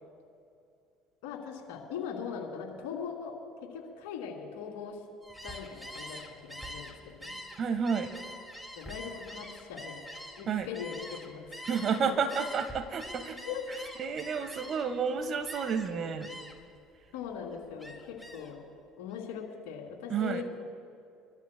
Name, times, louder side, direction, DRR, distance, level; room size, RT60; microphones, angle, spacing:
voice 1, 1.2-3.3 3.7-5.0 5.4-6.2 6.4-6.9 7.2-7.4 8.8-10.0 10.4-11.6 11.9-12.1 13.5-13.6 17.1-18.6 19.0-20.4, left 7 dB, 80° left, -1 dB, 2.7 m, -40 dB
Gull seagull, 5.2-12.0 12.3-15.0 15.4-15.9 16.2-16.7 17.1-18.5, equal, ahead, 2.2 m, -45 dB
voice 2, 7.6-8.1 10.5-10.7 11.7-13.4 14.0-16.3 20.1-20.4, right 6 dB, 50° right, 9 dB, 1.4 m, -30 dB
29.5 x 13.0 x 2.3 m, 2.5 s
hypercardioid pair, 75°, 0 cm